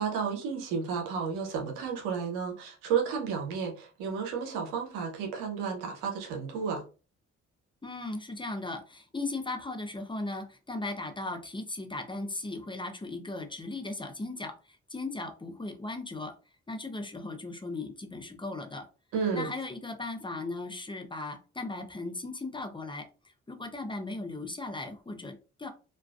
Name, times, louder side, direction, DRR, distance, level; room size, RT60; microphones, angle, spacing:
voice 1, 0.0-6.8 19.1-19.5, right 6 dB, 90° right, 0.7 m, -32 dB
voice 2, 7.8-16.3 16.7-18.8 19.3-25.7, left 2 dB, 15° left, 0.6 m, -37 dB
2.4 x 2.2 x 2.3 m
hypercardioid pair, 45°, 31 cm